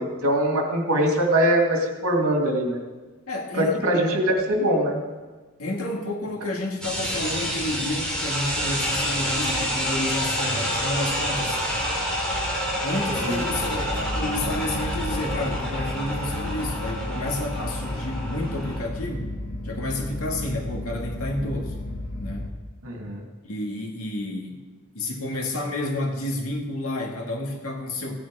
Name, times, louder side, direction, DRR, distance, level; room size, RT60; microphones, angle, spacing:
voice 1, 0.0-2.8 3.6-5.0 13.2-13.4 22.8-23.2, right 1 dB, 75° right, 1 dB, 2.4 m, -22 dB
voice 2, 3.3-3.7 5.6-11.6 12.8-19.3 19.6-21.7 22.2-22.5 23.4-24.6 24.9-28.2, left 1 dB, 80° left, 0 dB, 2.1 m, -30 dB
sound 1, 6.8-18.8, equal, 5° left, 3.7 m, -28 dB
sound 2, 13.3-22.5, left 1 dB, 60° left, 1.7 m, -33 dB
16.0 x 9.4 x 4.9 m, 1.3 s
head